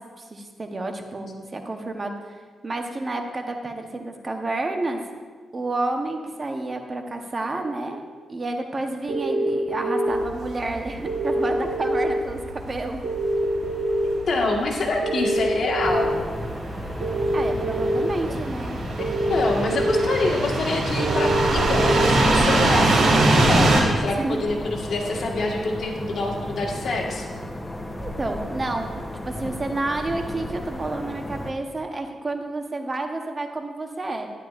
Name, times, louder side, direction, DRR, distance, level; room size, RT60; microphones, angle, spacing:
voice 1, 0.2-2.3 2.6-5.0 5.5-13.0 17.3-18.8 24.2-24.5 28.0-34.3, right 2 dB, 35° right, 4 dB, 0.9 m, -30 dB
sound 1, 9.1-10.1 11.0-12.1 13.0-14.0 15.0-16.0 17.0-18.0 19.0-20.0 21.0-22.0, right 1 dB, 55° right, 2.9 m, -25 dB
sound 2, 10.1-23.8, right 2 dB, 80° right, 1.8 m, -24 dB
voice 2, 14.3-16.2 19.0-27.4, left 2 dB, 65° left, 0 dB, 1.5 m, -26 dB
sound 3, 15.8-31.5, left 1 dB, 10° left, 0.8 m, -34 dB
11.5 x 10.5 x 2.5 m, 1.5 s
cardioid pair, 85°, 0 cm